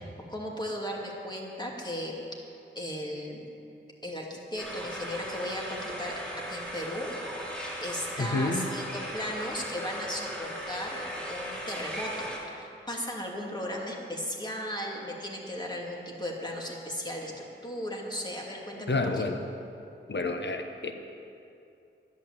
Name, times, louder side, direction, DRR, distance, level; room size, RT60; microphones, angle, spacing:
voice 1, 0.0-2.2 2.7-3.4 4.0-6.2 6.5-7.1 7.8-19.0, equal, 20° left, -2 dB, 2.7 m, -36 dB
sound 1, 4.6-12.4, equal, 5° left, 3.1 m, -38 dB
voice 2, 8.2-8.6 18.9-19.4 20.1-20.9, left 3 dB, 60° left, 5 dB, 1.1 m, -29 dB
11.5 x 11.0 x 7.7 m, 2.6 s
wide cardioid pair, 65°, 21 cm